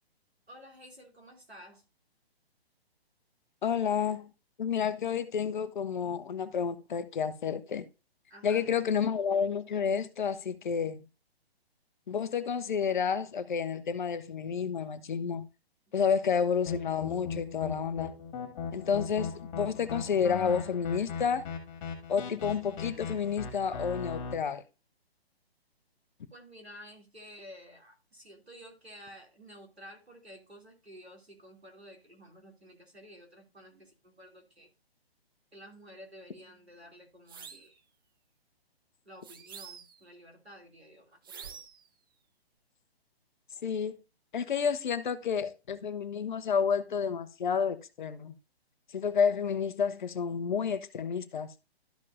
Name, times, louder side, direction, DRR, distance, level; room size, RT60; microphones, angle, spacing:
voice 1, 0.5-1.8 8.3-8.7 26.3-34.7 35.5-37.8 39.0-41.6, equal, 90° right, 2.8 m, -52 dB
voice 2, 3.6-4.3 4.6-7.8 8.4-11.0 12.1-15.5 15.9-18.2 18.7-21.5 22.1-24.6 43.6-44.0 44.3-48.3 48.9-51.5, left 6 dB, 50° left, 0.8 m, -30 dB
sound 1, 16.7-24.3, left 6 dB, 30° left, 2.0 m, -38 dB
sound 2, 37.3-37.7 39.2-40.1 41.2-41.9, right 7 dB, 20° right, 0.4 m, -47 dB
12.5 x 5.3 x 2.6 m
figure-of-eight pair, 130°, 31 cm